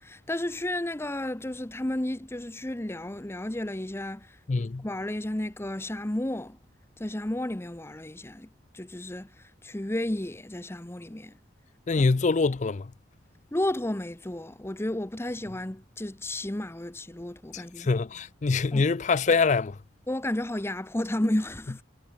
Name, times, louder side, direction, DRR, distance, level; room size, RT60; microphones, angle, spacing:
voice 1, 0.0-4.4 4.8-6.6 7.0-11.3 13.5-17.9 18.7-18.8 20.1-21.8, left 1 dB, 15° left, 0.8 m, -32 dB
voice 2, 4.5-4.8 11.9-12.9 17.5-19.7, left 4 dB, 40° left, 0.5 m, -24 dB
head